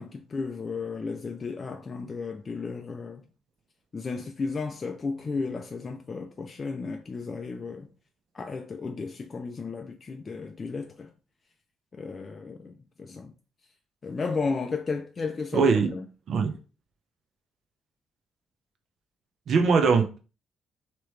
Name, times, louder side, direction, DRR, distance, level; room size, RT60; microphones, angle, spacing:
voice 1, 0.0-3.2 3.9-7.9 8.3-11.1 11.9-13.3 14.0-16.0, left 4 dB, 35° left, 0.3 m, -34 dB
voice 2, 15.5-15.9 16.3-16.6 19.5-20.2, right 5 dB, 65° right, 0.7 m, -21 dB
3.0 x 2.9 x 3.1 m
cardioid pair, 90°, 0 cm